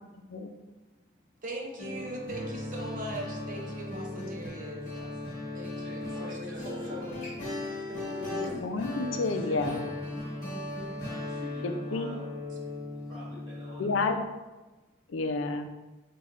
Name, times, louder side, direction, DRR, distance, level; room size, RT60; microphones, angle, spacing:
voice 1, 0.5-1.4 4.8-5.4 5.8-7.0 9.1-9.8 11.0-12.2 12.9-14.1, left 1 dB, 15° right, -9 dB, 1.3 m, -48 dB
voice 2, 1.4-4.9 5.5-7.2 7.8-8.5, right 1 dB, 45° right, 1 dB, 0.6 m, -40 dB
acoustic.coda, 1.8-14.0, left 2 dB, 40° left, 1.2 m, -37 dB
voice 3, 8.3-9.8 11.6-12.1 13.8-14.3 15.1-15.7, left 3 dB, 85° left, 6 dB, 0.4 m, -30 dB
5.6 x 2.3 x 3.0 m, 1.1 s
head